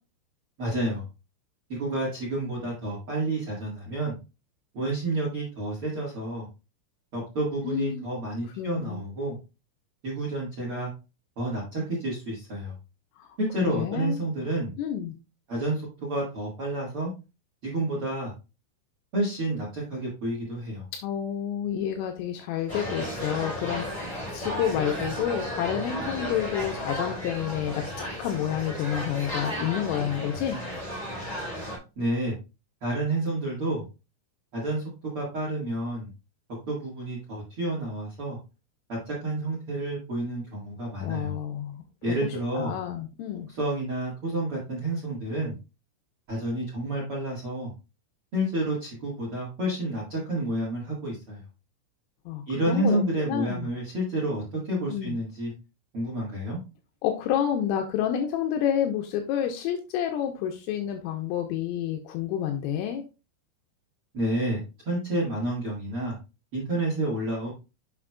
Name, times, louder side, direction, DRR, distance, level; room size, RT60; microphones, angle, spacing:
voice 1, 0.6-1.0 1.7-4.2 4.7-6.5 7.1-9.4 10.0-10.9 11.4-12.7 13.4-14.7 15.5-17.1 17.6-18.3 19.1-20.8 31.9-32.3 32.8-33.8 34.5-34.8 35.1-36.1 36.7-38.4 38.9-41.3 42.0-42.7 43.6-45.5 46.3-47.7 48.3-51.4 52.5-55.5 55.9-56.6 64.1-66.2 66.5-67.5, right 1 dB, 75° right, -5 dB, 1.2 m, -29 dB
voice 2, 7.6-8.1 8.6-9.0 13.2-13.3 13.7-14.2 14.8-15.1 21.0-30.6 41.0-41.8 42.2-43.5 52.3-53.7 54.9-55.2 57.0-63.0, left 10 dB, 85° left, 3 dB, 3.2 m, -29 dB
sound 1, 22.7-31.8, equal, 10° left, 2.5 m, -34 dB
7.3 x 6.1 x 2.3 m, 0.29 s
omnidirectional pair, 5.9 m